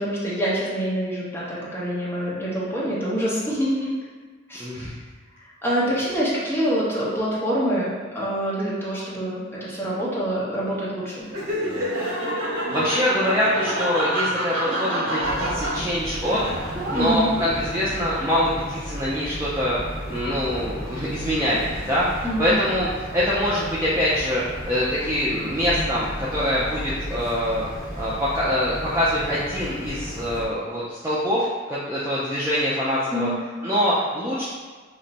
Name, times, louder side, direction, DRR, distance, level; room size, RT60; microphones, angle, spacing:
voice 1, 0.0-3.9 4.5-4.6 5.6-11.3 16.9-17.3 22.2-22.5 33.1-33.4, equal, 10° left, -8 dB, 0.7 m, -26 dB
voice 2, 4.6-5.0 12.7-16.4 16.9-19.8 20.1-27.6 28.0-33.3 33.6-34.4, equal, 10° right, -9 dB, 0.3 m, -24 dB
Laughter, 11.3-17.8, equal, 70° right, 0.7 m, -27 dB
sound 1, 15.2-30.5, equal, 40° left, 1.2 m, -34 dB
2.5 x 2.1 x 3.9 m, 1.4 s
head